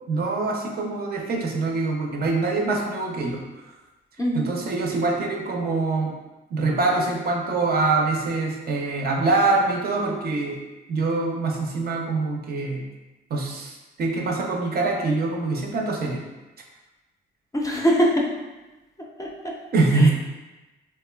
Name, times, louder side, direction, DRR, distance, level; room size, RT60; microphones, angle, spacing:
voice 1, 0.0-3.4 4.3-6.2 6.5-10.6 10.9-12.9 13.3-16.2 19.7-20.1, right 3 dB, 50° right, 0 dB, 0.5 m, -24 dB
voice 2, 4.2-4.5 17.5-18.3 19.0-19.6 19.9-20.1, equal, 15° left, -1 dB, 0.4 m, -23 dB
2.9 x 2.2 x 2.2 m, 1.1 s
cardioid pair, 90°, 20 cm